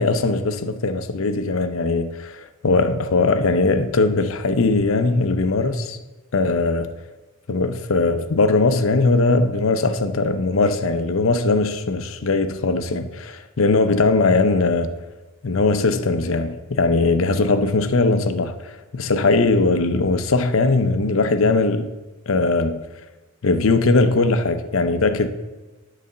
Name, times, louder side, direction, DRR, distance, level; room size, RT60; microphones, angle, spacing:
voice 1, 0.0-6.0 6.3-6.9 7.5-14.9 15.4-21.9 22.3-22.9 23.4-25.3, left 3 dB, 65° left, 0.6 m, -20 dB
11.0 x 4.1 x 6.6 m
head